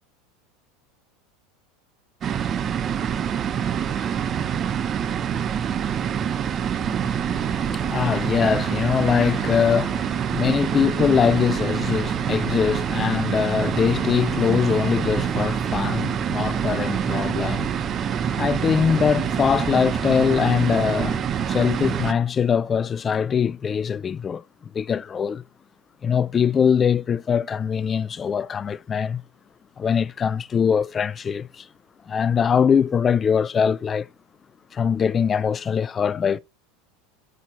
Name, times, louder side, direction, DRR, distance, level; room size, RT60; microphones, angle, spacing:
sound 1, 2.2-22.1, right 8 dB, 35° right, 0.6 m, -26 dB
voice 1, 6.8-24.4 24.7-25.4 26.0-29.2 29.8-31.7 32.1-34.1 34.7-36.4, left 7 dB, 30° left, 0.4 m, -22 dB
8.0 x 6.3 x 3.0 m
hypercardioid pair, 85°, 0 cm